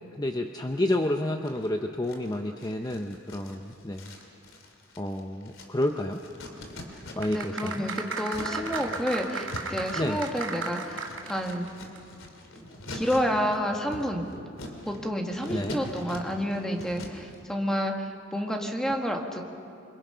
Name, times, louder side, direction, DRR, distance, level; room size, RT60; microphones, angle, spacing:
voice 1, 0.1-4.1 5.0-6.2 7.2-7.8 10.0-10.2 15.5-15.8, left 1 dB, 20° left, 4 dB, 0.7 m, -30 dB
sound 1, 0.9-1.7 2.0-7.5 7.8-17.4, left 1 dB, 85° left, 3.2 m, -43 dB
sound 2, 7.2-11.7 12.0-12.1, right 4 dB, 85° right, 3.5 m, -35 dB
voice 2, 7.3-11.7 12.9-14.3 14.8-19.4, equal, 5° left, 2 dB, 1.8 m, -30 dB
28.0 x 25.0 x 5.7 m, 2.6 s
head